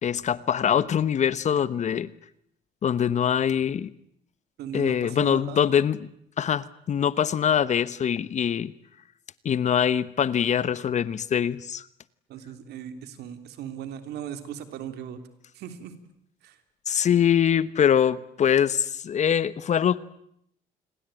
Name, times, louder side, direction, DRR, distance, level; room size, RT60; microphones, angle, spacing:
voice 1, 0.0-2.1 2.8-3.9 4.7-6.1 6.4-8.7 9.4-11.8 16.9-20.0, left 8 dB, 45° left, 18 dB, 1.1 m, -23 dB
voice 2, 4.6-5.6 12.3-15.2 15.5-16.0 16.4-16.6, right 9 dB, 75° right, 10 dB, 3.3 m, -38 dB
28.5 x 21.0 x 9.1 m, 0.73 s
cardioid pair, 110°, 17 cm